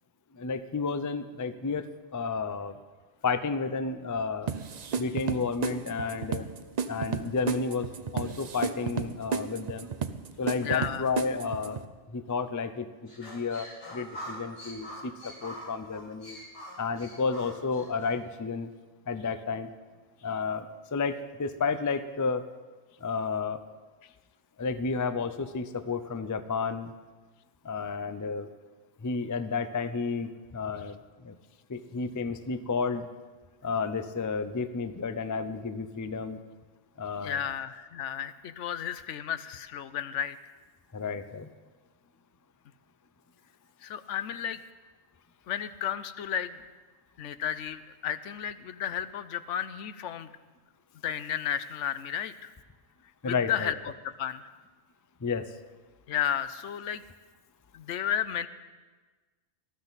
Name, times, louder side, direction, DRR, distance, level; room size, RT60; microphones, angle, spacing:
voice 1, 0.3-2.8 3.2-4.5 5.0-6.5 6.9-9.9 10.4-11.8 12.1-16.4 16.8-18.7 19.1-19.7 20.2-22.4 23.0-23.6 24.6-26.9 27.6-28.5 29.0-31.4 31.7-33.1 33.6-36.4 37.0-37.4 40.9-41.5 53.2-53.7 55.2-55.5, left 4 dB, 30° left, 11 dB, 0.3 m, -31 dB
sound 1, 4.5-11.9, right 6 dB, 45° right, 0.6 m, -33 dB
voice 2, 10.6-11.0 37.2-40.4 43.8-44.6 45.5-46.6 47.2-50.3 51.0-52.5 53.2-53.8 54.0-54.4 56.1-57.0 57.7-58.5, left 9 dB, 75° left, 13 dB, 1.0 m, -33 dB
sound 2, 13.1-18.1, equal, 50° left, 3.1 m, -44 dB
19.0 x 14.0 x 4.1 m, 1.3 s
omnidirectional pair, 1.2 m